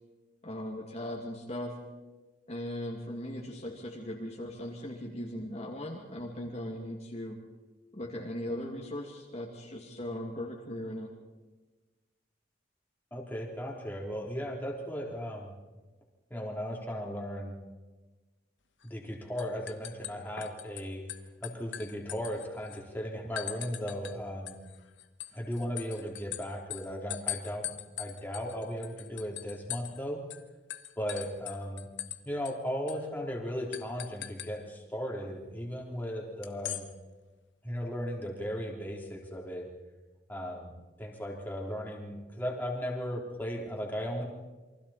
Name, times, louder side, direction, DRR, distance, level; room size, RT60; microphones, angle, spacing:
voice 1, 0.4-1.8 2.5-7.4 7.9-11.1, left 1 dB, 35° left, -2 dB, 2.4 m, -38 dB
voice 2, 13.1-15.5 16.3-17.6 18.8-21.0 21.4-24.6 25.3-30.2 31.0-31.9 32.2-36.9 37.6-39.7 40.3-44.2, equal, 10° left, -2 dB, 3.4 m, -36 dB
sound 1, 18.8-19.1 19.4-20.8 21.1-22.8 23.4-24.2 24.5-30.0 30.3-30.4 30.7-32.2 32.4-32.5 32.9-33.0 33.7-34.5 36.4-36.8, left 13 dB, 65° left, 1.3 m, -40 dB
28.5 x 24.0 x 4.3 m, 1.2 s
head